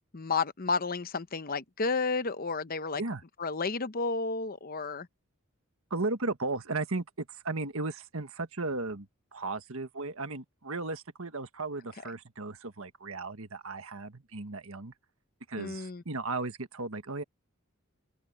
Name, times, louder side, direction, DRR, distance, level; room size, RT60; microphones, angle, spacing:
voice 1, 0.1-3.0 3.4-5.1 15.6-16.0, left 4 dB, 40° left, 0.8 m, -31 dB
voice 2, 5.9-14.9 15.5-17.2, right 3 dB, 70° right, 1.6 m, -35 dB
open air
head